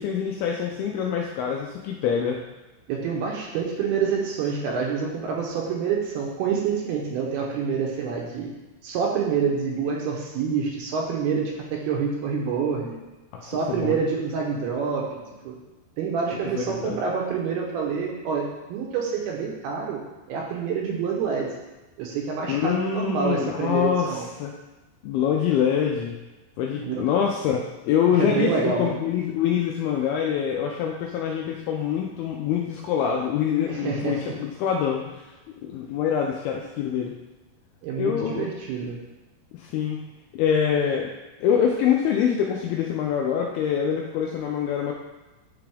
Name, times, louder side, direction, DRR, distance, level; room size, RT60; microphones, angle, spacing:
voice 1, 0.0-2.4 13.3-14.0 16.3-17.0 22.5-24.5 25.0-26.2 26.6-35.3 35.6-37.1 38.0-38.5 39.5-40.0 40.3-41.1 41.4-44.9, left 8 dB, 85° left, 0 dB, 2.2 m, -25 dB
voice 2, 2.9-8.5 8.8-13.0 13.4-15.2 15.4-15.5 16.0-20.0 20.3-21.5 22.0-24.3 26.7-27.1 28.1-29.0 33.7-34.4 37.8-39.0, right 6 dB, 80° right, -1 dB, 2.5 m, -27 dB
9.6 x 3.5 x 3.4 m, 1.1 s
omnidirectional pair, 4.9 m